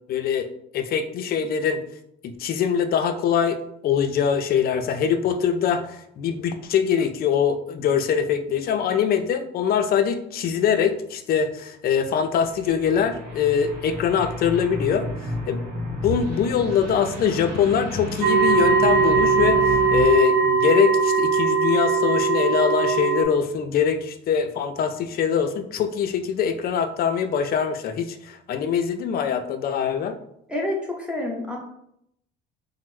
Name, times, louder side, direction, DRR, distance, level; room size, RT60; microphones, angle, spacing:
voice 1, 0.1-0.5 0.7-1.8 2.2-3.6 3.8-15.6 16.0-30.2, left 7 dB, 45° left, 8 dB, 0.4 m, -23 dB
sound 1, 12.3-20.0, equal, 90° right, 1.0 m, -32 dB
sound 2, 18.2-23.2, right 4 dB, 45° right, 0.6 m, -20 dB
voice 2, 30.5-31.6, left 1 dB, 5° right, -1 dB, 0.8 m, -28 dB
3.1 x 2.0 x 3.1 m, 0.75 s
supercardioid pair, 90°, 21 cm